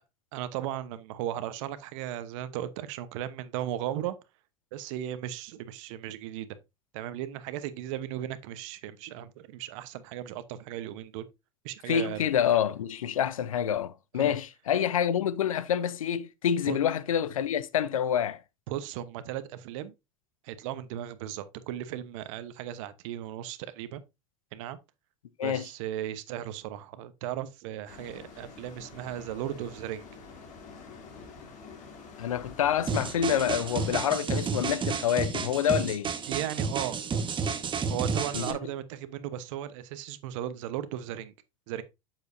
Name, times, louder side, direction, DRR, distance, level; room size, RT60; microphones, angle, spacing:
voice 1, 0.3-4.2 4.7-6.5 6.9-11.3 11.6-12.3 14.1-14.3 16.7-16.8 18.7-19.9 20.4-24.0 24.5-24.8 25.4-30.1 36.3-37.0 37.9-41.3 41.7-41.8, right 12 dB, 70° right, 1.0 m, -36 dB
voice 2, 11.9-18.4 25.4-25.7 32.2-36.1 38.3-38.6, left 9 dB, 90° left, 0.6 m, -27 dB
sound 1, 27.9-34.0, left 4 dB, 45° left, 2.8 m, -47 dB
sound 2, 32.9-38.5, right 5 dB, 30° right, 1.3 m, -31 dB
7.9 x 7.1 x 2.6 m
hypercardioid pair, 90°, 17 cm